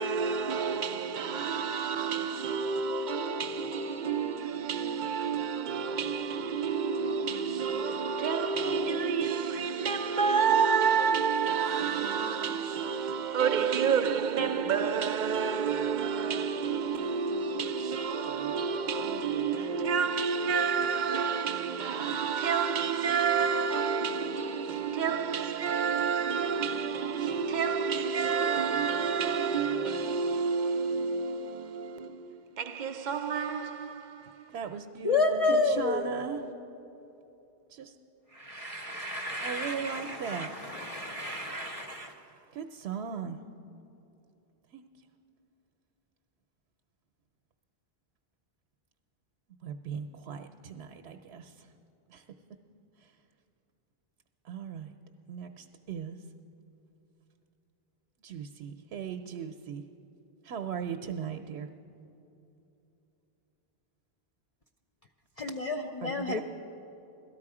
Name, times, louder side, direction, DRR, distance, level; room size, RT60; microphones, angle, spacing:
voice 1, 0.0-34.5, right 6 dB, 55° right, 0.6 m, -29 dB
voice 2, 34.5-36.4 37.7-38.0 38.8-43.4 44.7-44.8 49.6-51.7 52.1-52.2 53.0-53.2 54.4-54.9 55.3-56.2 58.2-59.8 60.4-61.7 66.0-66.4, right 7 dB, 85° right, 0.8 m, -38 dB
voice 3, 35.0-36.1 38.3-42.1 65.4-66.4, left 3 dB, 45° left, 0.5 m, -30 dB
17.5 x 13.0 x 4.8 m
omnidirectional pair, 1.1 m